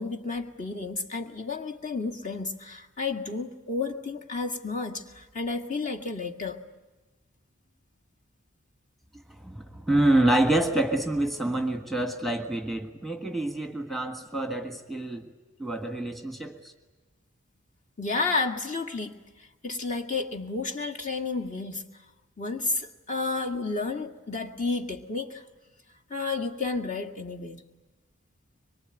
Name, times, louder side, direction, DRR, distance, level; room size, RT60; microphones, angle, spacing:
voice 1, 0.0-6.6 18.0-19.2 19.6-21.9 22.4-25.4 26.1-27.6, left 3 dB, 40° left, 2.0 m, -31 dB
voice 2, 9.4-15.3 15.6-16.7, right 1 dB, ahead, 1.6 m, -27 dB
24.5 x 23.5 x 9.2 m
head